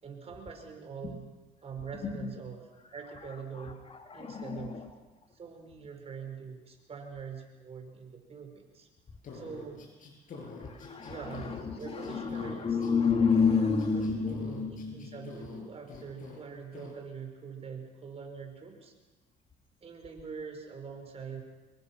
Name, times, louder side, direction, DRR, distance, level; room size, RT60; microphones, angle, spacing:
voice 1, 0.0-1.3 1.6-2.6 2.9-3.9 4.1-4.8 5.3-8.9 9.3-9.8 11.1-12.8 13.6-18.9 19.8-21.4, right 6 dB, 35° right, 4 dB, 5.5 m, -44 dB
voice 2, 3.5-4.9 10.4-15.7, left 5 dB, 35° left, 4 dB, 2.4 m, -30 dB
sound 1, 9.2-12.9 13.3-15.6 15.9-16.4 16.7-16.9, left 4 dB, 50° left, 7.3 m, -47 dB
26.0 x 22.5 x 6.1 m, 1.2 s
cardioid pair, 110°, 17 cm